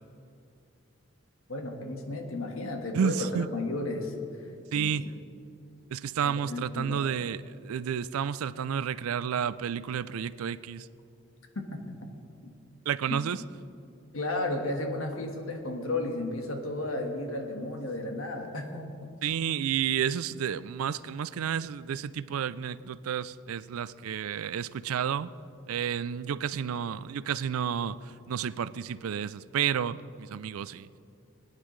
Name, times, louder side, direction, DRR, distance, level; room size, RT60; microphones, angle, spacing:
voice 1, 1.5-4.1 4.7-5.1 6.2-7.0 11.5-11.8 12.4-12.5 14.1-19.2, left 2 dB, 80° left, 3 dB, 1.5 m, -34 dB
voice 2, 2.9-3.5 4.7-5.1 5.9-10.9 12.9-13.4 19.2-25.3 25.7-30.9, right 8 dB, 85° right, 16 dB, 0.4 m, -31 dB
21.5 x 9.9 x 3.2 m, 2.5 s
head